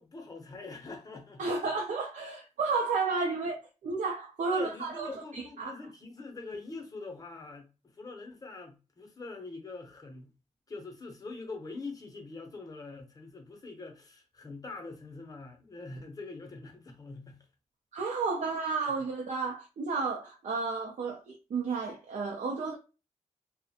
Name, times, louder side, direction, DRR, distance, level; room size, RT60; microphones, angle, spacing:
voice 1, 0.0-1.5 4.5-10.3 10.7-17.5, left 3 dB, 30° left, 0.6 m, -44 dB
voice 2, 1.4-3.6 3.8-5.8 17.9-22.7, right 4 dB, 85° right, 0.5 m, -32 dB
2.4 x 2.0 x 2.7 m
wide cardioid pair, 155°, 12 cm